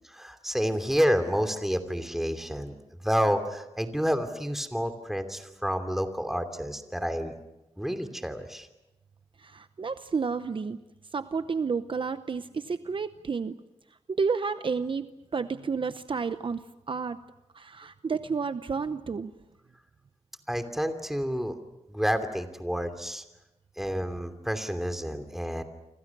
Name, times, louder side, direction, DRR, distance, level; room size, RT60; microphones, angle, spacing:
voice 1, 0.2-2.7 3.0-7.4 7.8-8.7 20.5-21.5 21.9-23.2 23.8-25.6, equal, 5° right, 7 dB, 2.9 m, -29 dB
voice 2, 9.4-10.8 11.1-13.6 14.1-15.1 15.3-17.2 17.5-19.3, right 5 dB, 50° right, 11 dB, 0.8 m, -31 dB
29.0 x 25.5 x 6.1 m, 0.95 s
wide cardioid pair, 100°, 11 cm